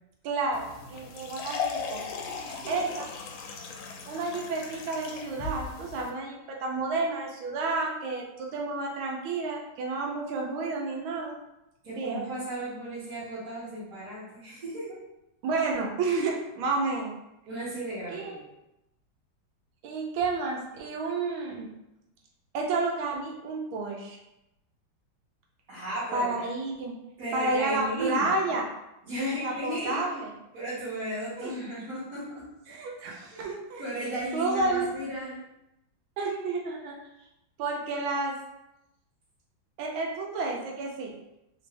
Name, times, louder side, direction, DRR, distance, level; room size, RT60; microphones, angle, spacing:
voice 1, 0.2-2.1 2.7-3.1 4.1-11.3 11.9-12.3 15.4-17.1 18.1-18.4 19.8-21.7 22.5-24.2 26.1-26.9 27.3-28.7 29.2-30.3 31.4-31.5 32.7-33.8 34.3-34.9 36.2-37.0 37.6-38.4 39.8-41.1, right 3 dB, 85° right, 0 dB, 1.5 m, -30 dB
sound 1, 0.5-6.1, left 5 dB, 90° left, 1.4 m, -37 dB
voice 2, 11.8-15.0 17.5-18.4 25.7-26.5 27.2-28.3 29.1-30.0 30.5-32.5 33.3-33.5 33.8-35.4, right 1 dB, 50° right, -12 dB, 1.5 m, -35 dB
3.7 x 2.5 x 3.3 m, 0.88 s
omnidirectional pair, 2.2 m